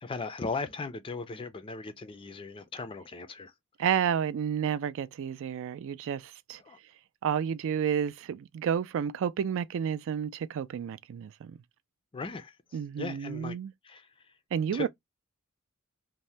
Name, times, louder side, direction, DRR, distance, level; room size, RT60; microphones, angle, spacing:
voice 1, 0.0-3.5 6.7-6.8 12.1-12.5 13.0-13.6 13.8-14.1 14.7-14.9, left 3 dB, 25° left, 0.4 m, -37 dB
voice 2, 3.8-6.6 7.2-11.6 12.7-13.7 14.5-14.9, right 8 dB, 65° right, 0.3 m, -31 dB
2.7 x 2.1 x 3.1 m
head